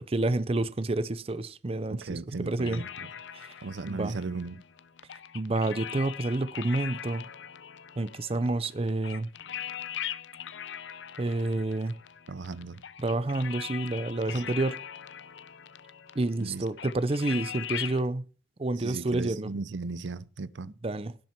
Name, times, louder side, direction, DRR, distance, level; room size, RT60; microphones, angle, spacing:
voice 1, 0.0-2.8 3.3-3.5 3.9-4.2 5.3-7.3 8.0-9.3 11.2-12.0 13.0-14.8 16.1-18.2 18.6-19.5 20.7-21.2, right 2 dB, 30° right, 0.6 m, -29 dB
voice 2, 1.9-3.1 3.6-4.6 12.3-12.8 14.3-14.4 16.4-16.6 18.8-20.7, right 3 dB, 80° right, 0.6 m, -37 dB
sound 1, 2.6-18.0, left 10 dB, 85° left, 0.6 m, -41 dB
17.0 x 7.6 x 4.4 m
head